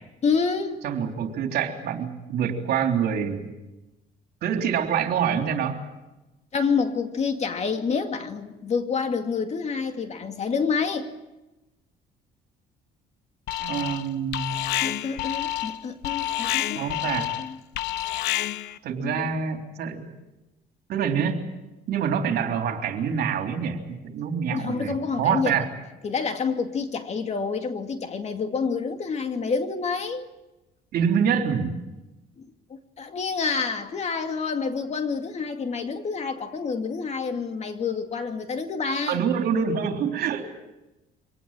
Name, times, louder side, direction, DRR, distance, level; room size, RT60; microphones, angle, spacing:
voice 1, 0.2-0.8 6.5-11.1 14.8-17.6 19.0-19.3 24.5-25.6 26.0-30.3 32.4-39.2, left 5 dB, 40° left, 6 dB, 2.4 m, -28 dB
voice 2, 0.8-3.5 4.4-5.8 13.6-14.8 16.7-17.3 18.8-20.1 20.9-21.4 21.9-25.7 30.9-31.8 39.1-40.4, right 7 dB, 70° right, 4 dB, 3.5 m, -26 dB
Alarm, 13.5-14.1 14.3-18.8, left 13 dB, 85° left, 1.0 m, -29 dB
25.0 x 18.5 x 9.0 m, 1.0 s
cardioid pair, 110°, 17 cm